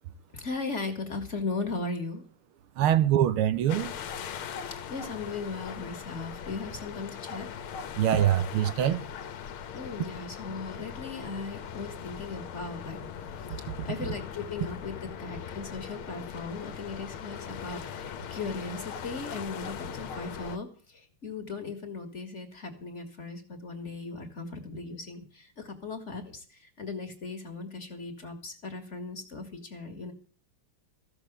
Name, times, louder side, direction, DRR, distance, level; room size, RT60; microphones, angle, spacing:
voice 1, 0.3-2.2 4.9-7.5 9.7-13.1 13.4-13.5 13.8-30.1, left 3 dB, 35° left, 2.1 m, -37 dB
voice 2, 2.8-3.9 8.0-9.0, right 11 dB, 80° right, 1.8 m, -24 dB
sound 1, 3.7-20.6, left 8 dB, 75° left, 1.9 m, -40 dB
15.0 x 7.1 x 8.8 m
omnidirectional pair, 2.3 m